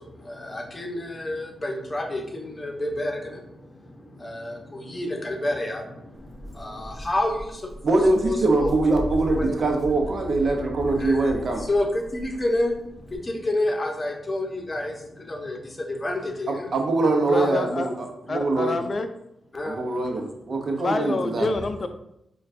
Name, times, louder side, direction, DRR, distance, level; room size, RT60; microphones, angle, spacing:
voice 1, 0.0-7.7 8.2-8.7 9.2-9.6 11.0-16.7 17.3-17.5 19.5-20.1, left 1 dB, 30° left, 1 dB, 0.8 m, -29 dB
Walk footsteps, 6.1-13.2, left 1 dB, 10° right, 1.3 m, -38 dB
voice 2, 7.8-11.6 16.7-18.1 18.3-18.8 19.6-21.5, right 2 dB, 60° right, 3 dB, 0.7 m, -23 dB
voice 3, 17.2-17.9 18.3-19.1 20.8-21.9, left 2 dB, 45° left, 7 dB, 0.4 m, -27 dB
4.4 x 2.3 x 2.6 m, 0.81 s
cardioid pair, 55°, 0 cm